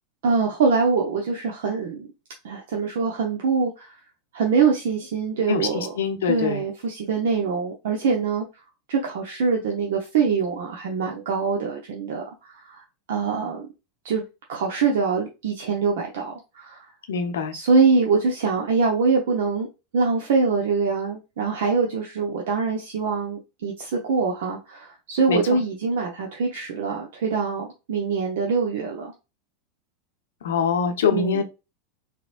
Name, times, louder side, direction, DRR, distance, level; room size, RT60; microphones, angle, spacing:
voice 1, 0.2-2.1 2.4-3.9 4.3-5.9 6.2-8.4 8.9-12.8 13.1-13.7 14.0-14.2 14.5-16.8 17.5-19.7 19.9-29.1 31.1-31.4, right 5 dB, 65° right, 0.8 m, -24 dB
voice 2, 5.5-6.6 17.1-17.5 25.3-25.4 30.4-31.4, left 6 dB, 75° left, 0.6 m, -24 dB
4.0 x 2.9 x 2.5 m
hypercardioid pair, 90°, 0 cm